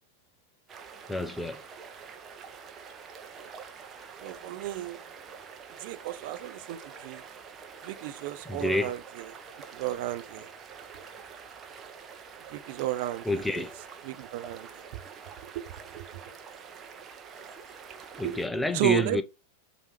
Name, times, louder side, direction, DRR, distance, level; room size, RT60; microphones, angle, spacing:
sound 1, 0.7-18.5, right 6 dB, 25° right, 1.0 m, -46 dB
voice 1, 1.1-1.6 8.4-8.9 13.2-13.7 18.2-19.2, left 1 dB, 5° left, 0.6 m, -28 dB
voice 2, 4.2-5.0 5.8-7.2 7.8-9.4 9.7-10.5 12.5-13.7 14.0-15.0 15.4-15.6 15.9-16.3 18.2-18.4 18.7-19.2, right 14 dB, 50° right, 0.7 m, -33 dB
8.0 x 3.0 x 4.9 m
figure-of-eight pair, 90°, 0 cm